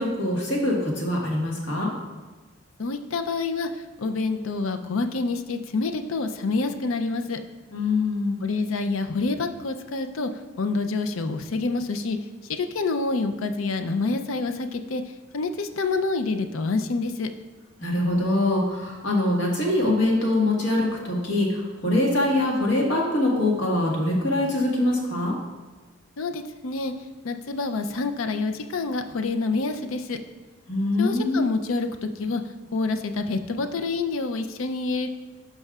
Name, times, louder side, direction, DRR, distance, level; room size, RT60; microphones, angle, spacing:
voice 1, 0.0-1.9 7.7-8.4 17.8-25.3 30.7-31.4, left 1 dB, 65° left, -2 dB, 1.6 m, -23 dB
voice 2, 2.8-3.7 4.0-7.4 8.4-10.3 10.6-12.2 12.5-15.0 15.3-17.3 26.2-26.9 27.2-30.2 31.0-32.4 32.7-35.1, left 3 dB, 85° left, 8 dB, 0.5 m, -27 dB
12.0 x 5.4 x 2.4 m, 1.3 s
head